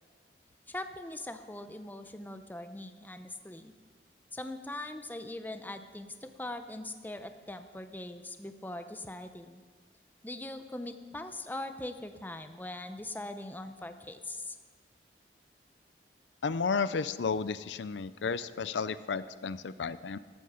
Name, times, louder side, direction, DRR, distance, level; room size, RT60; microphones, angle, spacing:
voice 1, 0.7-3.7 4.3-9.6 10.2-14.6, left 1 dB, 10° left, 8 dB, 0.7 m, -41 dB
voice 2, 16.4-20.2, left 5 dB, 85° left, 15 dB, 0.5 m, -32 dB
13.5 x 13.0 x 5.0 m, 1.5 s
head